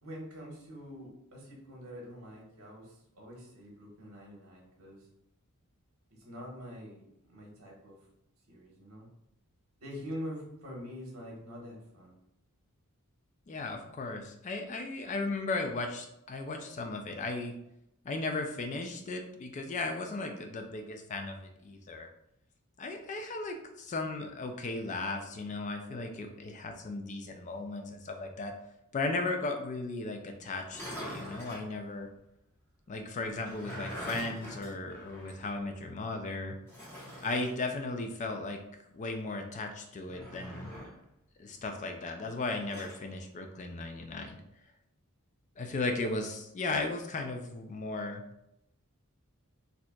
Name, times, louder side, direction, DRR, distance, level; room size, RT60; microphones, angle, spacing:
voice 1, 0.0-5.1 6.2-8.0 8.5-9.1 9.8-12.1, equal, 65° right, -2 dB, 1.3 m, -45 dB
voice 2, 13.5-17.5 18.0-22.1 22.8-28.5 28.9-32.1 32.9-36.6 37.2-38.6 38.9-40.7 41.4-44.4 45.6-48.2, left 3 dB, 35° left, 4 dB, 0.4 m, -36 dB
sound 1, 30.6-31.7 33.2-35.5 35.8-35.9 36.7-37.6 40.0-41.0 42.4-43.0, equal, 10° left, 1.0 m, -44 dB
4.3 x 2.8 x 2.3 m, 0.80 s
head